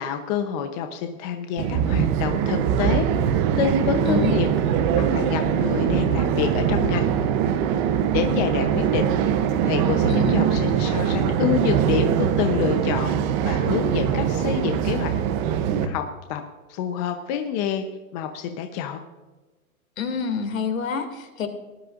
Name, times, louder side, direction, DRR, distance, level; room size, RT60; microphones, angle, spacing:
voice 1, 0.0-4.5 4.9-7.1 8.1-9.2 9.6-13.1 13.4-15.1 15.8-16.4 16.7-17.8 18.1-19.0, left 8 dB, 30° left, 6 dB, 0.8 m, -27 dB
sound 1, 1.6-15.9, right 8 dB, 20° right, 0.7 m, -22 dB
voice 2, 8.2-8.6 10.1-10.4 20.0-21.5, left 5 dB, 65° left, 7 dB, 2.5 m, -28 dB
19.0 x 12.0 x 2.5 m, 1.2 s
hypercardioid pair, 145°, 44 cm